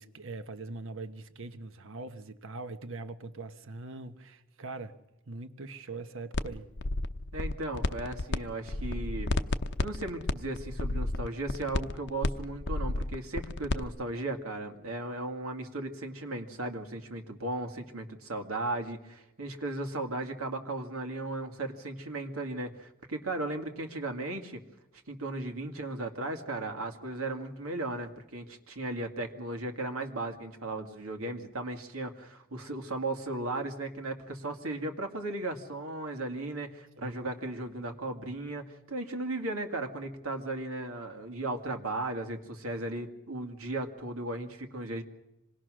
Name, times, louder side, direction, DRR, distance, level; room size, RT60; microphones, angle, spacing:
voice 1, 0.0-5.0 5.3-6.7 37.0-37.3, right 3 dB, 65° right, 1.2 m, -42 dB
sound 1, 6.3-6.5 6.8-8.4 8.6-13.8, left 2 dB, 55° left, 0.8 m, -31 dB
voice 2, 7.3-9.4 9.8-24.6 25.1-45.0, right 2 dB, 90° right, 2.2 m, -36 dB
26.0 x 20.0 x 6.3 m
head